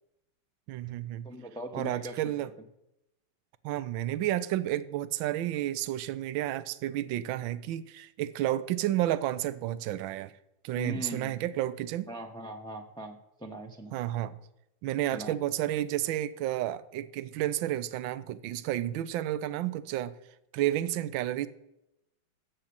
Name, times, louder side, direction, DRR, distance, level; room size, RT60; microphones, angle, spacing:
voice 1, 0.7-1.3 1.7-2.5 3.6-10.3 10.6-12.1 13.9-14.4 14.8-20.1 20.5-21.5, right 13 dB, 75° right, 1.4 m, -31 dB
voice 2, 1.2-2.3 10.7-11.4 12.1-14.0 15.1-15.4, equal, 5° left, 0.4 m, -40 dB
12.0 x 7.3 x 8.7 m
omnidirectional pair, 2.3 m